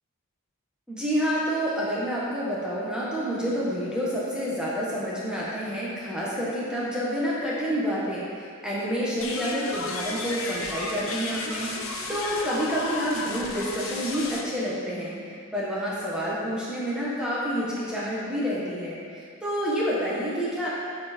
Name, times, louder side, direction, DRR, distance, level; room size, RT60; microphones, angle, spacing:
voice 1, 0.9-20.7, equal, 5° right, -8 dB, 1.5 m, -29 dB
sound 1, 9.2-14.4, left 3 dB, 70° left, 0.9 m, -33 dB
11.5 x 4.5 x 4.5 m, 2.3 s
head